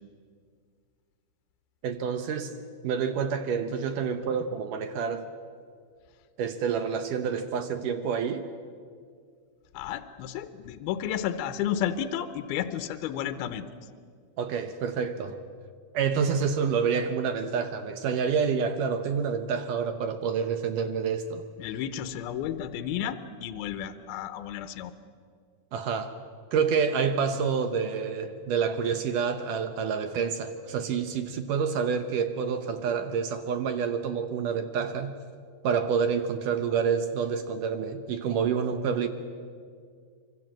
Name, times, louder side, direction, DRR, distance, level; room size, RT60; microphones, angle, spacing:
voice 1, 1.8-2.5 2.8-5.3 6.4-8.5 14.4-15.4 15.9-21.5 25.7-26.1 26.5-35.1 35.6-39.1, right 6 dB, 70° right, 9 dB, 2.1 m, -28 dB
voice 2, 9.7-13.6 21.6-24.9, left 10 dB, 80° left, 10 dB, 2.7 m, -32 dB
25.0 x 24.5 x 7.5 m, 2.1 s
omnidirectional pair, 4.7 m